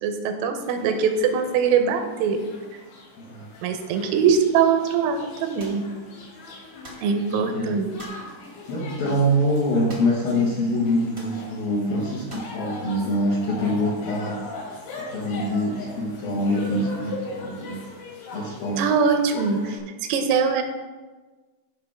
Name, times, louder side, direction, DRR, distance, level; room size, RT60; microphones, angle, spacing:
voice 1, 0.0-2.4 2.7-2.8 3.6-5.8 7.0-7.9 18.8-20.6, right 6 dB, 85° right, 6 dB, 3.4 m, -22 dB
sound 1, 0.6-19.8, left 2 dB, 85° left, 5.6 m, -40 dB
voice 2, 3.2-3.5 7.4-7.8 8.7-14.4 15.0-17.8 18.3-18.9, equal, 65° left, -4 dB, 2.4 m, -25 dB
sound 2, 5.6-5.8 6.8-7.1 8.0-8.3 9.9-10.3 10.5-10.6 11.1-11.4 12.3-12.6, right 1 dB, 50° right, 0.7 m, -43 dB
16.5 x 5.8 x 3.6 m, 1.3 s
omnidirectional pair, 5.8 m